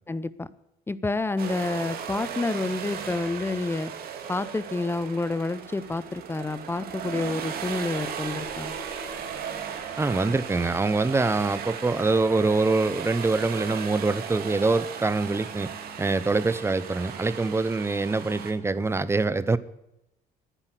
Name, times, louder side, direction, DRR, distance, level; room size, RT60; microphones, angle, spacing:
voice 1, 0.1-0.5 0.9-3.9 4.3-8.7, left 3 dB, 15° left, 16 dB, 0.7 m, -29 dB
sound 1, 1.4-18.5, right 7 dB, 65° right, 2.2 m, -36 dB
sound 2, 6.9-11.5, left 2 dB, 50° left, 2.2 m, -50 dB
voice 2, 10.0-15.7 16.0-19.6, right 3 dB, 15° right, 16 dB, 0.7 m, -24 dB
11.0 x 10.0 x 7.5 m, 0.86 s
cardioid pair, 110°, 17 cm